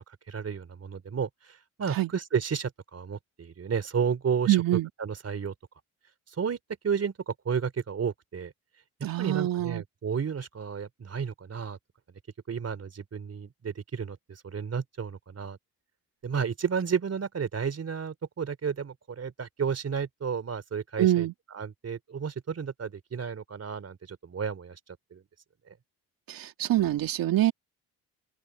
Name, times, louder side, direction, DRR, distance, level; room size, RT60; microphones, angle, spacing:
voice 1, 0.3-4.6 5.0-5.5 6.3-6.6 6.8-8.5 9.2-11.8 12.5-15.6 16.2-21.3 21.5-25.2 25.7-25.8, right 6 dB, 40° right, 3.3 m, -32 dB
voice 2, 4.5-4.9 9.0-9.8 21.0-21.3 26.3-27.5, right 14 dB, 65° right, 2.0 m, -25 dB
open air
supercardioid pair, 65°, 38 cm